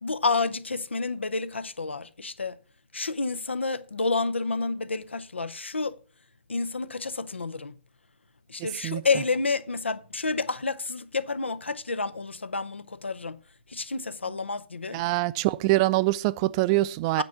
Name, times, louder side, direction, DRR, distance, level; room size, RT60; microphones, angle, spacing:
voice 1, 0.0-2.6 2.9-6.0 6.5-7.7 8.5-13.4 13.7-15.0 17.2-17.3, left 3 dB, 85° left, 0.6 m, -29 dB
voice 2, 14.9-17.2, right 18 dB, 30° right, 0.4 m, -24 dB
9.0 x 4.5 x 7.0 m
figure-of-eight pair, 130°, 6 cm